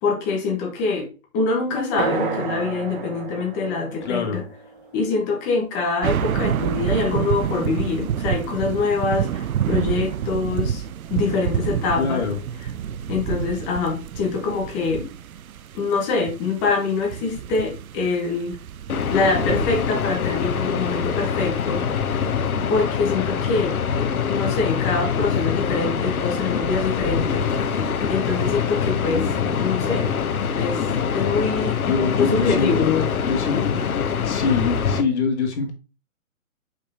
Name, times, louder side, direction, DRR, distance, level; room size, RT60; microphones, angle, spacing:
voice 1, 0.0-1.1 1.3-4.4 4.9-10.8 11.1-12.3 13.1-15.1 15.7-18.6 19.1-22.2 22.7-23.7 24.3-27.5 28.1-29.2 29.6-30.1 30.5-30.8 31.1-31.8 32.1-32.8, left 4 dB, 15° left, 1.2 m, -24 dB
sound 1, 2.0-5.9, right 4 dB, 40° right, 1.0 m, -31 dB
voice 2, 4.0-4.4 12.0-12.4 29.1-29.3 31.9-33.8 34.2-35.7, left 5 dB, 50° left, 2.2 m, -24 dB
sound 2, 6.0-21.2 21.7-21.8, right 9 dB, 80° right, 0.6 m, -28 dB
sound 3, 18.9-35.0, left 7 dB, 85° left, 1.1 m, -24 dB
5.5 x 5.1 x 3.5 m
hypercardioid pair, 165°, 42 cm